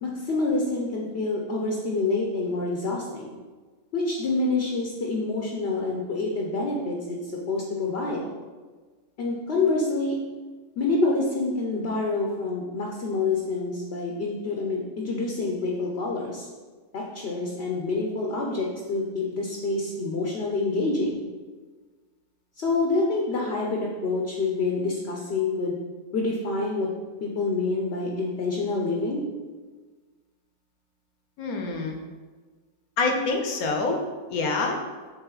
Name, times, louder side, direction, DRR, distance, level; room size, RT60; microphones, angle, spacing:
voice 1, 0.0-3.3 3.9-8.2 9.2-10.1 10.8-16.5 16.9-21.2 22.6-25.8 26.1-26.9 27.2-29.2, left 3 dB, 50° left, -1 dB, 0.8 m, -27 dB
voice 2, 31.4-32.0 33.0-34.0 34.3-34.8, left 3 dB, 70° left, 2 dB, 1.1 m, -26 dB
7.2 x 3.4 x 3.9 m, 1.4 s
omnidirectional pair, 1.7 m